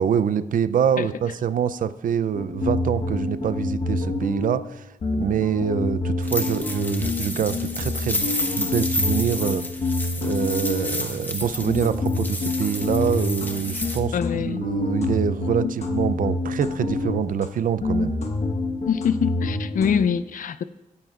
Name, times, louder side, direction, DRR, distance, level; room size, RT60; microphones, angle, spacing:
voice 1, 0.0-4.9 5.2-8.3 8.6-9.6 10.2-18.1, right 8 dB, 70° right, 15 dB, 0.4 m, -25 dB
sound 1, 2.3-4.8 5.0-11.1 11.4-17.5 17.8-20.1, left 3 dB, 50° left, 1.2 m, -27 dB
sound 2, 6.2-14.0, left 1 dB, 15° left, 0.9 m, -30 dB
voice 2, 14.1-14.7 15.6-15.8 18.9-20.6, left 7 dB, 70° left, 14 dB, 0.5 m, -24 dB
16.5 x 9.5 x 2.4 m, 1.0 s
wide cardioid pair, 170°, 14 cm